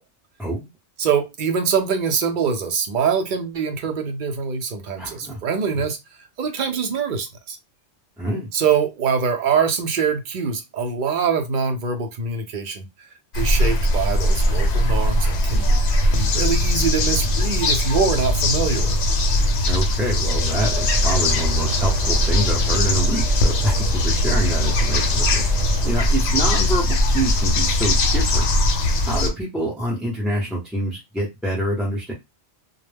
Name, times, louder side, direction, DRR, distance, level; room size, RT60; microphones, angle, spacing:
voice 1, 1.0-6.0 6.4-7.6 8.5-12.8 13.3-19.0, right 6 dB, 55° right, 0.6 m, -24 dB
voice 2, 5.0-5.4 8.2-8.5 15.5-15.8 19.7-28.4 29.0-32.1, right 1 dB, ahead, 0.5 m, -26 dB
sound 1, 13.3-29.3, left 1 dB, 65° left, 0.8 m, -20 dB
sound 2, 20.3-25.9, right 2 dB, 85° right, 0.9 m, -27 dB
2.2 x 2.0 x 3.3 m
omnidirectional pair, 1.3 m